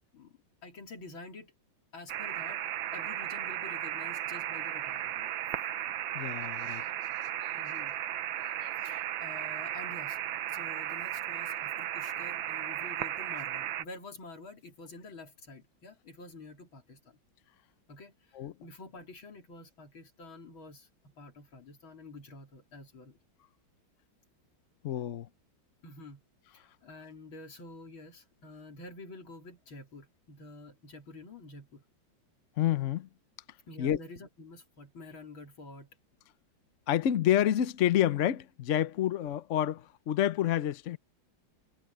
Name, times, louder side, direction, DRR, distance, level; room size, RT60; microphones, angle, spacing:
voice 1, 0.1-1.5 1.9-2.6 2.9-5.3 7.6-8.0 8.8-10.2 10.5-17.2 17.9-23.2 25.8-26.2 26.5-31.8 33.7-35.9, left 2 dB, 75° left, 4.4 m, -49 dB
sound 1, 2.1-13.8, right 12 dB, 75° right, 1.5 m, -35 dB
voice 2, 6.1-6.9 7.4-7.6 8.6-9.0 9.4-9.5 18.3-18.5 24.8-25.3 32.6-33.1 33.8-34.0 36.9-41.0, left 11 dB, 60° left, 0.8 m, -29 dB
omnidirectional pair, 2.2 m